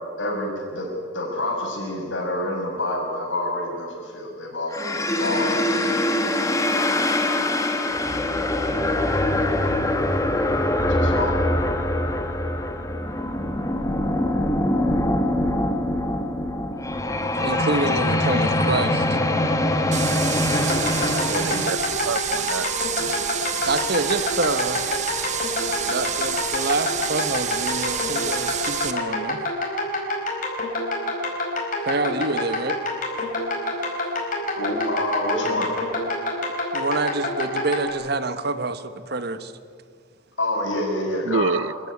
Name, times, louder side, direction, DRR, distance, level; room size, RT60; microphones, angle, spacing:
voice 1, 0.2-0.9 1.1-5.6 10.7-11.3 34.6-35.7 40.4-41.6, left 1 dB, 85° left, -1 dB, 6.9 m, -27 dB
sound 1, 4.7-21.7, left 1 dB, 15° left, 1.6 m, -23 dB
voice 2, 17.4-19.2 23.0-23.3 23.5-24.9 25.9-29.4 31.8-32.8 36.5-39.5, right 2 dB, 55° right, 12 dB, 1.1 m, -27 dB
sound 2, 19.9-28.9, right 8 dB, 40° right, 1.4 m, -29 dB
sound 3, 20.5-37.9, left 2 dB, 45° left, 5.0 m, -27 dB
voice 3, 21.3-22.7 41.3-41.9, right 4 dB, 90° right, 20 dB, 0.6 m, -27 dB
25.0 x 14.5 x 9.6 m, 2.1 s
head